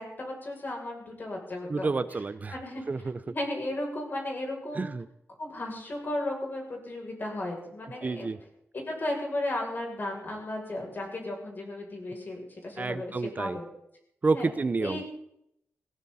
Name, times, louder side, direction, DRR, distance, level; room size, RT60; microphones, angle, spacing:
voice 1, 0.0-2.0 2.5-2.8 3.3-4.9 5.4-8.3 8.7-13.1 13.4-13.6 14.3-14.5 14.8-15.1, left 1 dB, 45° left, 0 dB, 7.0 m, -35 dB
voice 2, 1.7-2.5 2.9-3.2 4.7-5.1 8.0-8.4 12.8-13.6 14.2-15.0, right 3 dB, 35° right, 14 dB, 0.7 m, -29 dB
19.0 x 18.0 x 4.2 m, 0.77 s
wide cardioid pair, 95°, 5 cm